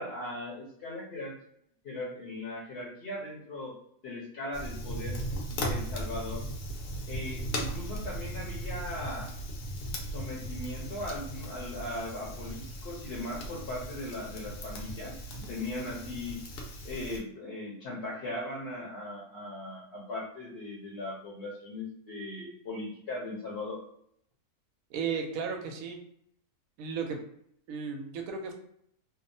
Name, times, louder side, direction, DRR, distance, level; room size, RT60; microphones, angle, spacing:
voice 1, 0.0-1.3 1.8-3.7 4.0-5.2 5.5-6.5 7.1-9.3 10.1-16.4 16.8-23.8, left 1 dB, 55° left, -5 dB, 0.8 m, -38 dB
Fire, 4.5-17.2, equal, 90° left, 1.1 m, -37 dB
voice 2, 24.9-26.0 26.8-27.2 27.7-28.5, right 6 dB, 70° right, 3 dB, 1.0 m, -34 dB
2.7 x 2.0 x 2.6 m, 0.69 s
omnidirectional pair, 1.6 m